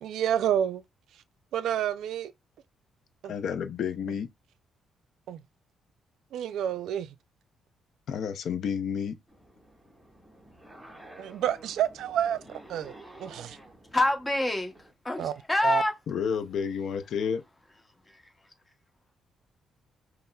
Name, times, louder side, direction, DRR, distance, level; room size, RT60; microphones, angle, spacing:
voice 1, 0.0-0.8 1.5-2.3 3.2-3.3 5.3-5.4 6.3-7.1 11.2-13.6 15.2-15.3 15.6-15.8, right 10 dB, 80° right, 0.3 m, -29 dB
voice 2, 3.3-4.3 8.1-9.2 16.1-17.4, left 7 dB, 70° left, 0.5 m, -30 dB
sound 1, 9.3-14.9, right 1 dB, 5° right, 1.5 m, -51 dB
voice 3, 13.9-14.7 15.0-15.9, left 1 dB, 15° left, 0.8 m, -26 dB
5.3 x 2.0 x 2.2 m
cardioid pair, 90°, 0 cm